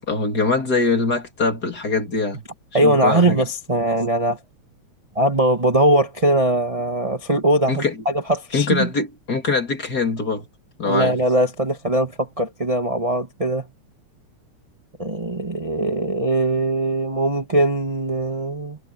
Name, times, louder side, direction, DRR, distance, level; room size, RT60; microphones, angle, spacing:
voice 1, 0.1-2.4 2.8-3.4 7.7-8.0 8.5-10.5 10.8-11.2, left 3 dB, 30° left, 3.4 m, -22 dB
voice 2, 2.7-4.4 5.1-8.9 10.8-13.7 15.0-18.8, right 1 dB, 20° right, 1.1 m, -21 dB
omnidirectional pair, 3.3 m